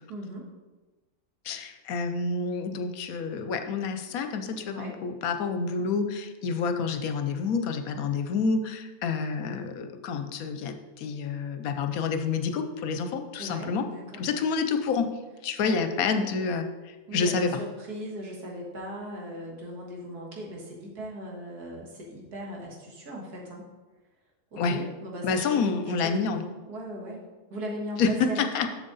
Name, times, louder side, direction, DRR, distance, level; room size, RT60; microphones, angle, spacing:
voice 1, 0.1-0.5 4.6-5.0 13.4-14.2 15.6-16.3 17.1-23.7 24.5-28.5, equal, 85° right, -2 dB, 2.1 m, -38 dB
voice 2, 1.4-13.9 14.2-15.1 15.4-17.5 24.6-24.8 25.2-26.4 28.0-28.7, left 5 dB, 70° left, 8 dB, 1.0 m, -28 dB
7.3 x 6.8 x 4.0 m, 1.2 s
omnidirectional pair, 1.6 m